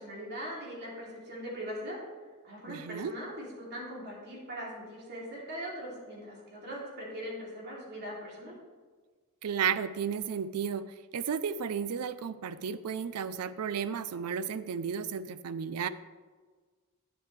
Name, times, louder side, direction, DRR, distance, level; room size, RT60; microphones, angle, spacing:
voice 1, 0.0-2.0 2.4-8.5, equal, 50° right, -4 dB, 3.1 m, -41 dB
voice 2, 2.7-3.1 9.4-15.9, right 7 dB, 85° right, 14 dB, 0.5 m, -33 dB
11.0 x 9.7 x 3.3 m, 1.4 s
head